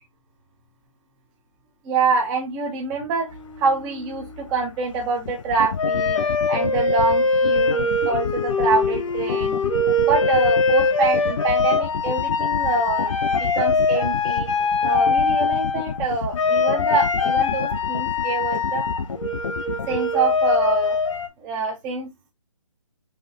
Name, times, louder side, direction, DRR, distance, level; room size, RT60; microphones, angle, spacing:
voice 1, 1.8-3.3 3.6-6.2 6.5-9.6 10.0-14.5 14.8-18.9 19.9-21.0 21.4-22.3, right 4 dB, 5° right, 1 dB, 0.3 m, -25 dB
sound 1, 3.3-4.5 5.8-16.0 16.3-21.3, left 3 dB, 75° left, 1.4 m, -22 dB
sound 2, 5.3-20.0, left 6 dB, 55° left, 0.6 m, -29 dB
5.7 x 2.3 x 3.9 m, 0.19 s
hypercardioid pair, 165°, 17 cm